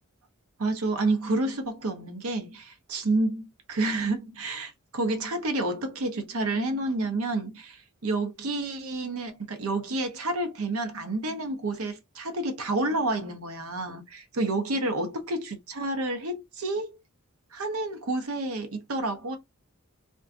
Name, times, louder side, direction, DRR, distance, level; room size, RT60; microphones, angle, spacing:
voice 1, 0.6-17.0 17.5-19.4, right 2 dB, 70° right, 0.7 m, -29 dB
2.5 x 2.2 x 2.4 m
head